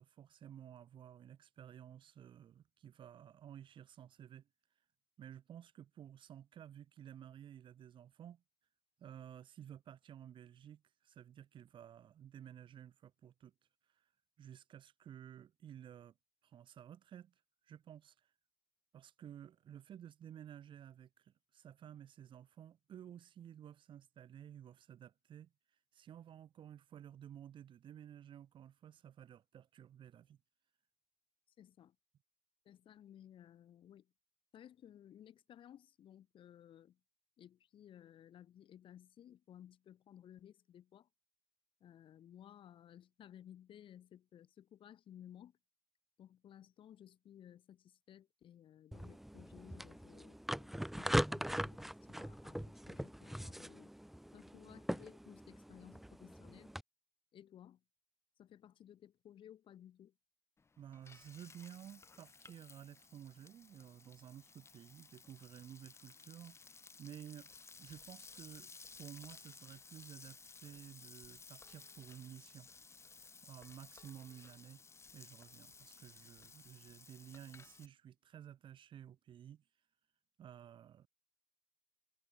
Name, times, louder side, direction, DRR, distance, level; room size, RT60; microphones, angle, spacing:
voice 1, 0.0-4.5 5.2-8.4 9.0-13.5 14.4-16.1 16.4-17.3 17.7-18.1 18.9-25.5 25.9-30.4 60.8-67.5 67.8-68.7 69.0-72.7 73.4-74.8 75.1-79.6 80.4-81.1, right 10 dB, 65° right, 1.3 m, -54 dB
voice 2, 31.6-32.0 32.7-34.1 34.5-37.0 37.4-41.1 41.8-45.6 46.2-53.9 54.3-56.7 57.3-57.8 58.4-60.1, left 10 dB, 70° left, 3.5 m, -58 dB
sound 1, 48.9-56.8, equal, ahead, 0.5 m, -41 dB
Frying (food), 60.6-77.9, left 4 dB, 30° left, 1.6 m, -58 dB
cardioid pair, 105°, 9 cm